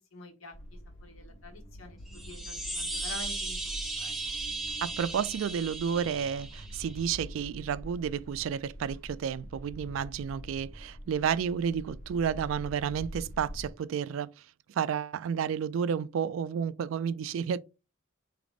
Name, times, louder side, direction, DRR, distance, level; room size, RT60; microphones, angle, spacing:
voice 1, 0.1-0.5 1.0-4.1, left 1 dB, 85° left, 1.2 m, -47 dB
sound 1, 0.5-13.7, equal, 35° left, 1.0 m, -45 dB
sound 2, 2.1-7.1, right 3 dB, ahead, 0.7 m, -37 dB
voice 2, 4.8-14.3 14.8-17.6, right 7 dB, 75° right, 0.3 m, -31 dB
4.8 x 3.5 x 2.4 m
head